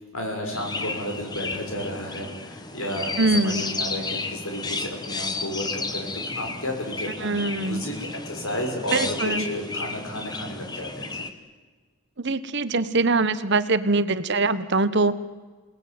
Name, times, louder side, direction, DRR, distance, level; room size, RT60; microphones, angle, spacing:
voice 1, 0.1-6.1 6.4-7.9 8.3-11.2, left 1 dB, 70° left, 2 dB, 6.4 m, -32 dB
Chirp tweet, 0.5-11.3, left 3 dB, 20° left, 1.2 m, -33 dB
voice 2, 3.2-3.7 7.2-7.8 8.9-9.5 12.2-15.1, right 3 dB, 50° right, 12 dB, 1.1 m, -23 dB
28.0 x 19.0 x 9.5 m, 1.4 s
head